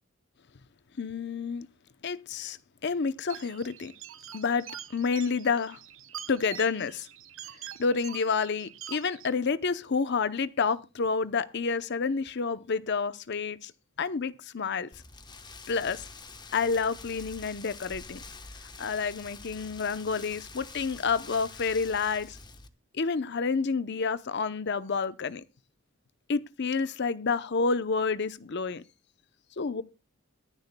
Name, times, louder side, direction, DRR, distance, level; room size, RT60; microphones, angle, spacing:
voice 1, 1.0-1.7 2.0-2.6 2.8-3.9 4.3-4.7 4.9-5.8 6.3-7.1 7.8-13.7 14.0-14.9 15.7-16.0 16.5-18.2 18.8-22.4 22.9-25.4 26.3-28.8 29.6-29.8, left 5 dB, 55° left, 0.7 m, -29 dB
sound 1, 3.3-9.3, right 10 dB, 75° right, 1.2 m, -45 dB
Rain, 14.9-22.7, left 4 dB, 20° left, 1.0 m, -46 dB
22.0 x 10.5 x 2.2 m
head